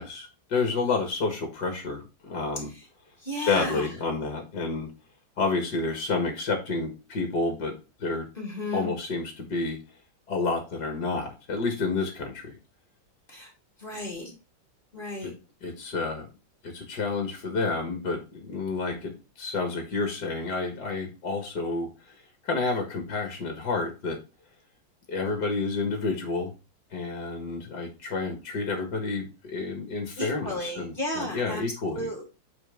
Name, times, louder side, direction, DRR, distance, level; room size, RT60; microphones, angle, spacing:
voice 1, 0.0-2.7 3.4-4.9 5.4-8.3 8.7-9.8 10.3-12.6 15.2-15.3 15.6-16.3 16.6-19.1 19.4-21.9 22.4-24.2 25.1-26.5 26.9-32.1, left 3 dB, 55° left, 4 dB, 2.1 m, -29 dB
voice 2, 3.2-3.9 8.4-8.9 13.3-13.5 13.8-14.4 14.9-15.3 30.2-32.2, left 1 dB, 25° left, 0 dB, 2.7 m, -34 dB
9.1 x 4.6 x 3.7 m, 0.30 s
omnidirectional pair, 2.2 m